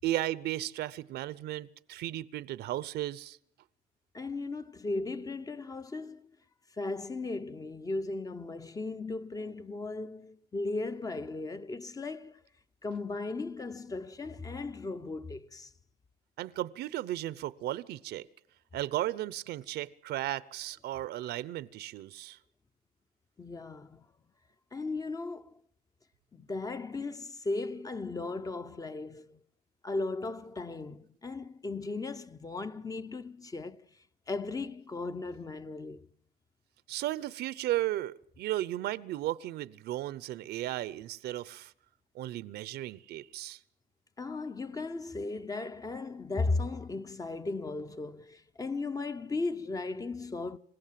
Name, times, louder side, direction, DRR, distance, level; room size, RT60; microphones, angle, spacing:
voice 1, 0.0-3.4 16.4-18.3 18.7-22.4 36.9-41.7 42.1-43.6, right 14 dB, 75° right, 0.8 m, -35 dB
voice 2, 4.1-6.2 6.7-12.4 12.8-15.7 23.4-24.1 24.7-25.5 26.3-29.4 29.8-33.9 34.3-36.1 44.2-50.6, left 3 dB, 20° left, 0.8 m, -36 dB
27.0 x 16.0 x 7.6 m
cardioid pair, 110°, 17 cm